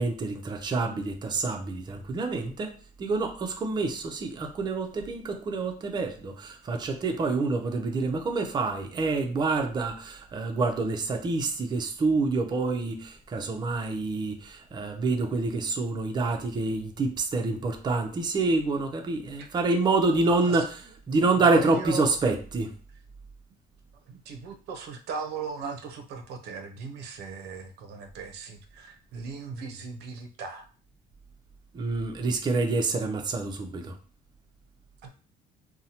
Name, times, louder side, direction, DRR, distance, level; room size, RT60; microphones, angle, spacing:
voice 1, 0.0-2.7 3.0-20.8 21.1-22.7 31.7-33.9, right 3 dB, 25° right, 4 dB, 0.4 m, -27 dB
voice 2, 21.4-22.1 24.1-30.7 35.0-35.1, right 5 dB, 75° right, 5 dB, 0.5 m, -38 dB
2.7 x 2.0 x 2.7 m, 0.38 s
cardioid pair, 110°, 17 cm